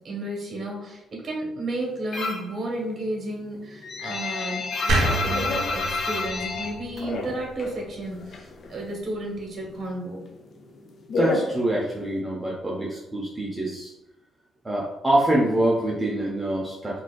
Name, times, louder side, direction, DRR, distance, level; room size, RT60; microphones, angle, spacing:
voice 1, 0.0-10.2, right 1 dB, 45° right, -1 dB, 1.0 m, -32 dB
sound 1, 2.1-2.6 2.9-7.8 8.0-9.1 9.4-12.2, left 3 dB, 50° left, 0.4 m, -29 dB
sound 2, 4.9-8.0, right 2 dB, 70° right, 0.6 m, -28 dB
voice 2, 11.1-13.9 14.6-17.0, right 1 dB, 15° right, -4 dB, 0.6 m, -25 dB
3.8 x 2.6 x 2.2 m, 0.94 s
cardioid pair, 120°, 0 cm